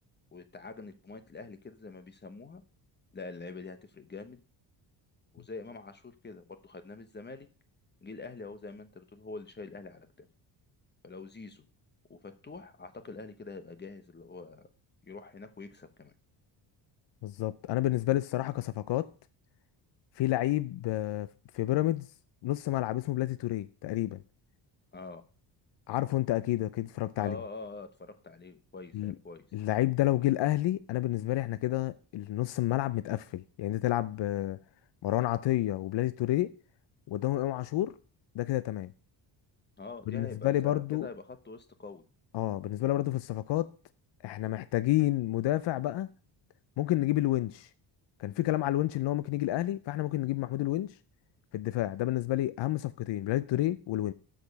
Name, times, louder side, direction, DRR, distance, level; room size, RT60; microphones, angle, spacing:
voice 1, 0.3-2.6 3.1-4.4 5.3-7.5 8.0-10.3 11.0-11.7 12.1-14.7 15.0-16.1 24.9-25.2 27.2-29.5 39.8-42.0, left 3 dB, 20° left, 1.0 m, -45 dB
voice 2, 17.2-19.1 20.2-21.3 21.5-22.1 22.4-24.2 25.9-27.4 28.9-29.1 29.5-34.6 35.0-36.5 37.1-37.9 38.3-38.9 40.1-41.1 42.3-43.7 44.2-46.1 46.8-47.7 48.2-50.9 51.5-54.1, left 15 dB, 65° left, 0.7 m, -29 dB
13.0 x 5.2 x 5.3 m
cardioid pair, 130°, 46 cm